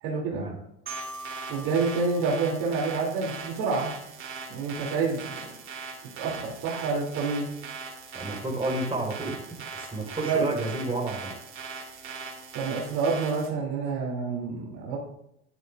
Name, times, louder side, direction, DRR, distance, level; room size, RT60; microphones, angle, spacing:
voice 1, 0.0-0.4 1.5-3.9 4.5-5.4 6.2-7.5 10.3-10.5 12.5-15.0, right 4 dB, 55° right, -2 dB, 2.8 m, -28 dB
sound 1, 0.9-13.5, right 5 dB, 40° right, 3.2 m, -40 dB
Marimba xylophone, 0.9-3.7, right 2 dB, 80° right, 3.9 m, -43 dB
voice 2, 8.1-9.4 9.7-11.4, right 2 dB, 15° right, -1 dB, 4.1 m, -31 dB
12.5 x 11.0 x 2.5 m, 0.79 s
hypercardioid pair, 80°, 34 cm